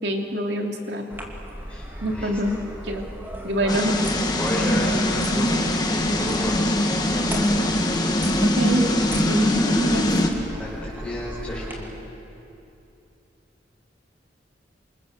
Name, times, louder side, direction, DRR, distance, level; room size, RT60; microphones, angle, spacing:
voice 1, 0.0-1.0 2.0-2.6 2.8-3.0 3.4-3.9 8.4-8.9 9.3-9.5 9.8-10.1, equal, 65° right, 2 dB, 3.0 m, -25 dB
sound 1, 1.1-11.7, equal, 10° right, 2.9 m, -36 dB
voice 2, 1.7-2.6 3.6-3.8 4.3-7.8 10.6-11.9, equal, 5° left, -8 dB, 5.3 m, -32 dB
sound 2, 3.7-10.3, left 1 dB, 20° left, 2.0 m, -22 dB
27.5 x 27.0 x 7.6 m, 2.8 s
head